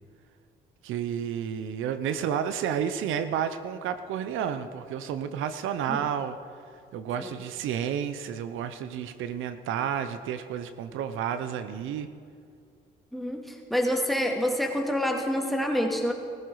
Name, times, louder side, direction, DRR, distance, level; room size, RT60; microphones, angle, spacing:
voice 1, 0.8-6.4 6.9-12.1, right 8 dB, 90° right, 11 dB, 0.8 m, -31 dB
voice 2, 13.1-16.1, equal, ahead, 1 dB, 2.3 m, -27 dB
18.5 x 15.0 x 4.8 m, 2.3 s
cardioid pair, 90°, 20 cm